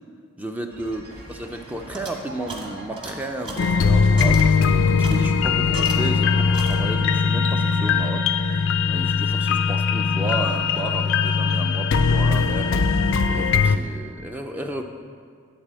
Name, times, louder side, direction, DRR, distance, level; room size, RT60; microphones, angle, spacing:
voice 1, 0.4-8.3 8.9-14.8, right 1 dB, 5° right, 4 dB, 0.4 m, -33 dB
sound 1, 0.7-6.5, right 1 dB, 50° right, 2.5 m, -42 dB
sound 2, 1.1-6.3 6.5-7.2, right 1 dB, 25° right, 1.3 m, -38 dB
sound 3, 3.6-13.8, left 5 dB, 60° left, 0.4 m, -20 dB
11.5 x 4.1 x 7.4 m, 2.1 s
head